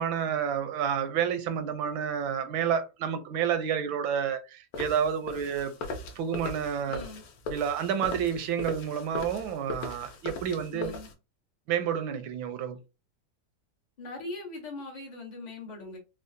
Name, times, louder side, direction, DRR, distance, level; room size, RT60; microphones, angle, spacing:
voice 1, 0.0-5.7 6.2-7.1 7.5-10.9 11.7-12.8, right 8 dB, 85° right, 1.3 m, -29 dB
sound 1, 4.7-11.1, left 3 dB, 65° left, 1.0 m, -39 dB
voice 2, 6.9-7.2 10.7-11.1 14.0-16.0, left 2 dB, 80° left, 0.4 m, -40 dB
3.7 x 2.0 x 2.5 m
omnidirectional pair, 2.1 m